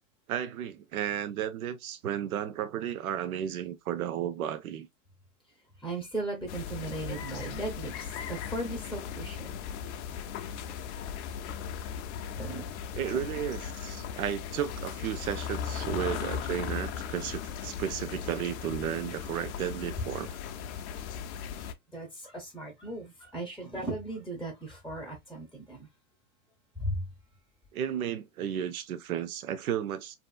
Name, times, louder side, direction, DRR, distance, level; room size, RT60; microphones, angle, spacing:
voice 1, 0.3-4.9 12.9-20.3 27.7-30.1, right 10 dB, 85° right, 0.6 m, -33 dB
voice 2, 5.8-9.6 12.3-12.8 13.1-13.2 21.9-25.9 26.8-27.0, right 2 dB, ahead, 0.6 m, -37 dB
sound 1, 6.5-21.7, left 8 dB, 55° left, 0.5 m, -37 dB
2.7 x 2.4 x 2.2 m
hypercardioid pair, 100°, 42 cm